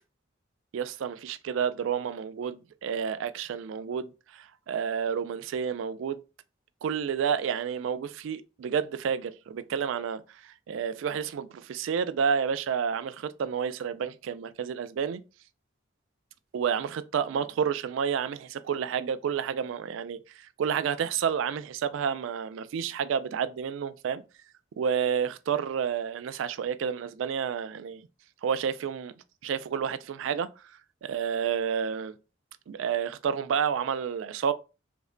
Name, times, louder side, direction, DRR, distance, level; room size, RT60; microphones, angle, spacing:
voice 1, 0.7-6.2 6.8-15.2 16.5-24.2 24.8-28.0 28.4-29.1 29.4-30.5 31.0-32.2 32.7-34.5, right 7 dB, 85° right, 0.3 m, -30 dB
3.2 x 2.1 x 3.7 m
head